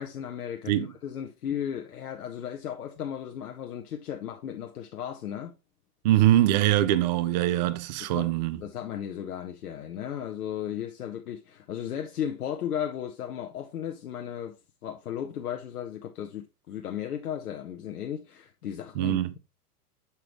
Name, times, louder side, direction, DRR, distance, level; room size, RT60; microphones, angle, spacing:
voice 1, 0.0-5.5 8.0-19.4, left 9 dB, 70° left, 0.8 m, -35 dB
voice 2, 6.0-8.6 19.0-19.3, right 13 dB, 30° right, 0.4 m, -23 dB
6.8 x 4.8 x 3.0 m
figure-of-eight pair, 105°, 46 cm